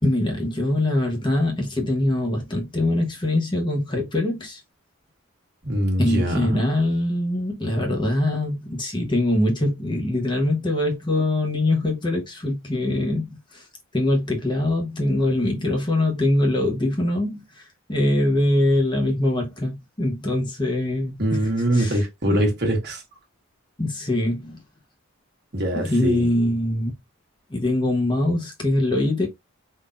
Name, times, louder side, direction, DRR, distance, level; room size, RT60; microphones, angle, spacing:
voice 1, 0.0-4.6 6.0-13.7 13.9-21.4 21.7-22.5 23.8-24.6 25.8-26.9 27.5-29.3, left 1 dB, 20° left, 1.0 m, -23 dB
voice 2, 5.6-6.6 21.2-23.0 25.5-26.3, equal, 50° right, 1.2 m, -23 dB
3.6 x 2.8 x 2.4 m
head